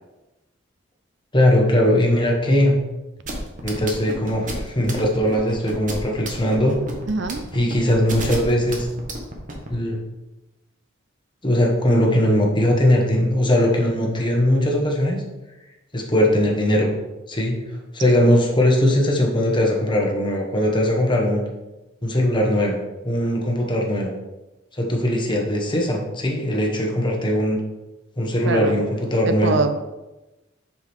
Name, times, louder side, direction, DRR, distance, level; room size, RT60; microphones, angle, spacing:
voice 1, 1.3-2.8 3.6-6.8 7.5-8.9 9.7-10.0 11.4-15.2 15.9-16.9 17.3-17.6 17.9-21.4 22.0-22.8 23.0-24.1 24.7-27.6 28.2-29.6, left 1 dB, 25° left, -1 dB, 1.3 m, -20 dB
sound 1, 3.2-9.7, right 1 dB, 40° right, 1.2 m, -31 dB
voice 2, 7.1-7.4 28.5-28.8 29.3-29.7, right 3 dB, 65° right, 9 dB, 0.5 m, -23 dB
7.3 x 5.8 x 3.6 m, 1.0 s
head